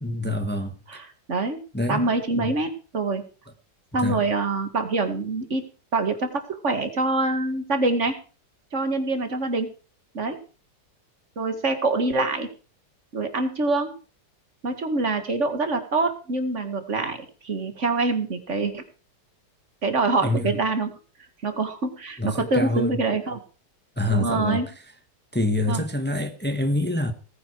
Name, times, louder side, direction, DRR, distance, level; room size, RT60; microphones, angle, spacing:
voice 1, 0.0-0.7 1.7-2.1 2.4-2.5 3.9-4.2 20.2-20.5 22.2-23.0 24.0-24.6 25.3-27.1, left 1 dB, 5° left, 1.4 m, -26 dB
voice 2, 0.9-1.6 1.9-3.2 3.9-5.7 5.9-8.2 8.7-9.7 10.1-10.4 11.4-12.5 13.1-13.9 14.6-17.2 17.4-18.8 19.8-21.0 21.4-23.4 24.1-24.7 25.7-25.8, right 3 dB, 45° right, 2.3 m, -25 dB
19.0 x 9.6 x 4.8 m
omnidirectional pair, 1.8 m